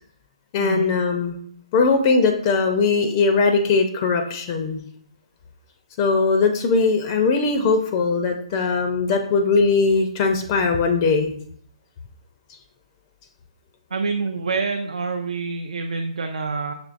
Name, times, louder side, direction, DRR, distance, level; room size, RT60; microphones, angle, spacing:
voice 1, 0.5-1.4 1.7-4.8 6.0-11.3, left 4 dB, 35° left, 5 dB, 0.4 m, -20 dB
voice 2, 13.9-16.7, right 4 dB, 70° right, 4 dB, 0.4 m, -26 dB
5.9 x 3.0 x 2.5 m, 0.63 s
figure-of-eight pair, 135°, 4 cm